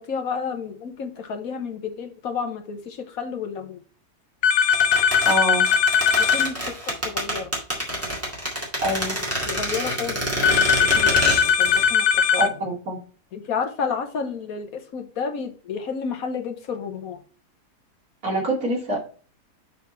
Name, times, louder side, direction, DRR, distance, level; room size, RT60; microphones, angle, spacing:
voice 1, 0.1-3.8 6.2-6.6 6.8-7.5 9.5-12.0 12.3-12.4 13.3-17.2, left 6 dB, 65° left, 6 dB, 1.4 m, -31 dB
sound 1, 4.4-6.5 10.4-12.5, left 7 dB, 80° left, 1.1 m, -19 dB
sound 2, 4.7-11.9 12.1-12.2, equal, 10° right, 2.0 m, -27 dB
voice 2, 5.3-5.7 8.8-9.2 12.4-13.0 18.2-19.0, right 1 dB, 70° right, -2 dB, 3.1 m, -25 dB
7.2 x 4.2 x 4.3 m, 0.39 s
omnidirectional pair, 1.6 m